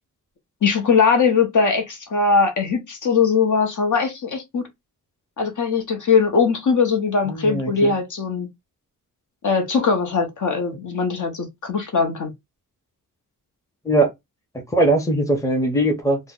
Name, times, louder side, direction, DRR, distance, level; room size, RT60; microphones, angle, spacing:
voice 1, 0.6-4.7 5.4-8.5 9.4-12.3, left 5 dB, 60° left, 0.9 m, -20 dB
voice 2, 7.3-7.9 13.8-14.1 14.7-16.2, right 1 dB, 10° left, 0.7 m, -20 dB
2.8 x 2.1 x 3.6 m
wide cardioid pair, 160°, 34 cm